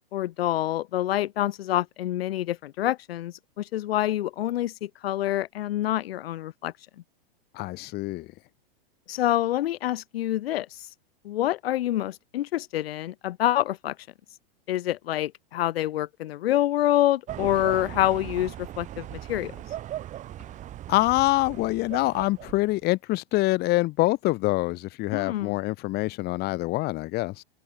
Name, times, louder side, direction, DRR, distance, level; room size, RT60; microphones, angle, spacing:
voice 1, 0.1-6.7 9.1-10.9 11.2-14.0 14.7-19.5 25.1-25.6, left 14 dB, 90° left, 0.5 m, -27 dB
voice 2, 7.5-8.3 20.9-27.4, left 20 dB, 35° left, 1.2 m, -25 dB
sound 1, 17.3-22.8, right 12 dB, 25° right, 1.3 m, -38 dB
open air
hypercardioid pair, 130°, 29 cm